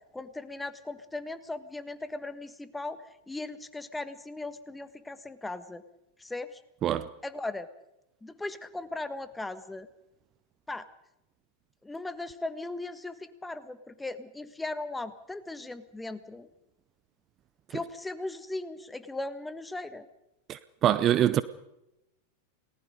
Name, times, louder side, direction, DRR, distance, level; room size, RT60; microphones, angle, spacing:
voice 1, 0.1-5.8 6.2-6.6 7.2-7.7 8.2-9.9 10.7-10.9 11.8-16.5 17.7-20.1, left 2 dB, 5° left, 1.4 m, -38 dB
voice 2, 20.5-21.4, right 11 dB, 30° right, 0.7 m, -24 dB
29.5 x 19.5 x 5.2 m
figure-of-eight pair, 90°, 0 cm